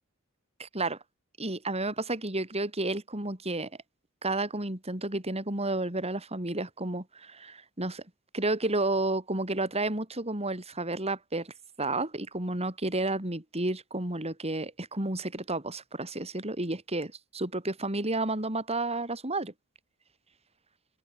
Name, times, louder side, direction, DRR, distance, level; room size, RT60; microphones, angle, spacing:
voice 1, 0.6-1.0 1.4-3.7 4.2-8.0 8.3-19.5, right 2 dB, 30° right, 4.5 m, -31 dB
open air
head